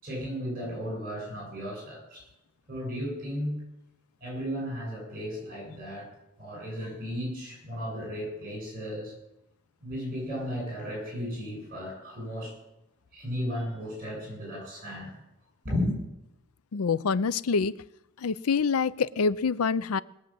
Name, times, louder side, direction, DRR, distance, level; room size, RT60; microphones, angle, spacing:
voice 1, 0.0-2.3 2.7-3.6 4.2-6.1 6.4-9.1 9.8-12.5 13.1-15.1 15.6-16.0, equal, 45° right, 0 dB, 7.8 m, -34 dB
voice 2, 16.7-17.7 18.2-20.0, left 5 dB, 85° left, 18 dB, 0.5 m, -26 dB
20.0 x 7.3 x 7.7 m, 0.86 s
head